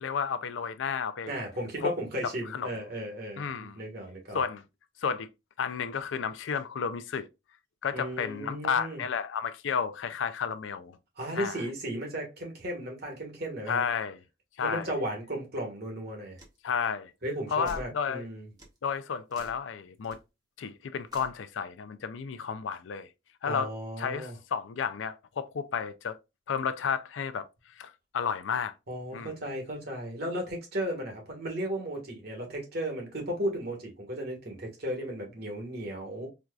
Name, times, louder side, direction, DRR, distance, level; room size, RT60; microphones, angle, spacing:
voice 1, 0.0-1.3 1.8-1.9 2.5-2.7 3.4-3.8 4.3-4.6 5.0-5.3 5.6-7.3 7.8-11.0 11.3-11.6 13.7-14.2 14.6-14.9 16.6-17.1 17.5-18.3 18.8-20.2 20.6-23.1 23.4-23.7 24.0-26.2 26.5-27.5 27.8-28.7 29.1-29.4, left 6 dB, 85° left, 0.4 m, -32 dB
voice 2, 1.3-4.4 7.9-9.0 11.2-13.9 14.6-16.4 17.2-18.5 23.4-24.3 28.9-36.3, equal, 55° right, 1.4 m, -35 dB
sound 1, 16.4-16.6 17.7-17.9 18.6-18.8 19.3-19.6 20.0-20.2 21.1-21.4, equal, 20° right, 0.9 m, -46 dB
4.4 x 2.4 x 2.3 m
head